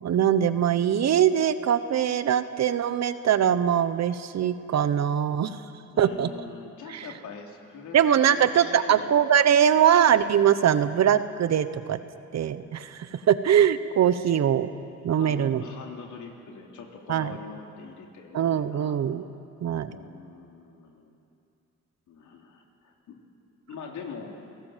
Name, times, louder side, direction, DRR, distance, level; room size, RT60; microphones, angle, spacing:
voice 1, 0.0-5.5 6.0-6.3 6.9-7.1 7.9-12.0 12.3-14.7 15.0-15.6 17.1-17.3 18.3-19.2 19.6-20.0, right 9 dB, 60° right, 12 dB, 1.2 m, -22 dB
voice 2, 5.9-8.0 8.2-9.9 15.1-19.0 19.9-21.1 22.1-23.2 23.7-24.4, left 5 dB, 75° left, 1 dB, 3.5 m, -43 dB
30.0 x 17.5 x 7.5 m, 2.6 s
cardioid pair, 90°, 30 cm